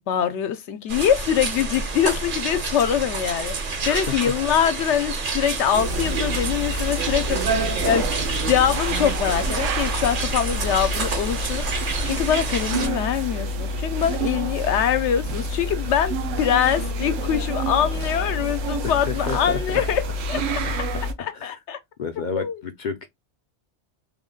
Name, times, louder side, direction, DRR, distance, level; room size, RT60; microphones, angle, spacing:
voice 1, 0.1-7.4 7.8-8.1 8.4-11.7 12.0-20.0 20.3-20.4 21.2-21.8 22.3-22.6, left 9 dB, 75° left, 0.9 m, -23 dB
sound 1, 0.9-12.9, right 4 dB, 50° right, 0.9 m, -29 dB
voice 2, 3.8-4.4 18.8-19.9 20.6-21.0 21.3-21.6 22.0-23.1, left 5 dB, 60° left, 0.5 m, -31 dB
sound 2, 5.7-21.1, right 1 dB, 85° right, 1.0 m, -27 dB
3.6 x 2.1 x 3.7 m
omnidirectional pair, 1.2 m